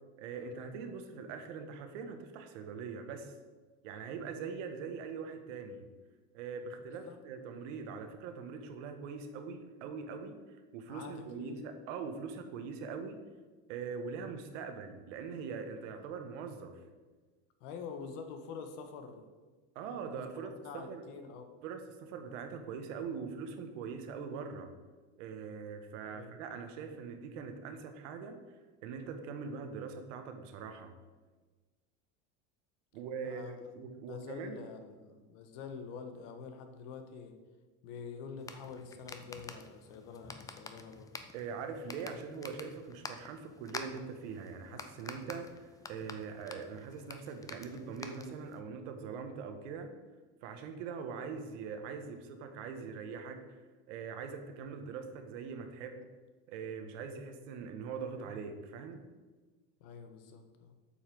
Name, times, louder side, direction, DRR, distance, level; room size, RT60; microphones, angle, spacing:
voice 1, 0.2-3.3 3.8-5.8 6.3-10.4 10.7-13.2 13.7-16.8 19.7-21.0 21.6-24.7 25.2-28.4 28.8-30.9 32.9-34.6 41.3-49.9 50.4-53.6 53.9-56.0 56.5-59.0, right 5 dB, 85° right, 6 dB, 1.4 m, -42 dB
voice 2, 6.8-7.2 10.9-11.6 17.6-19.2 20.4-21.5 26.1-26.4 33.3-37.3 37.8-41.1 59.8-60.7, left 5 dB, 70° left, 6 dB, 1.5 m, -46 dB
sound 1, 38.4-48.6, left 4 dB, 10° left, 0.4 m, -49 dB
8.2 x 5.7 x 6.7 m, 1.3 s
cardioid pair, 150°, 37 cm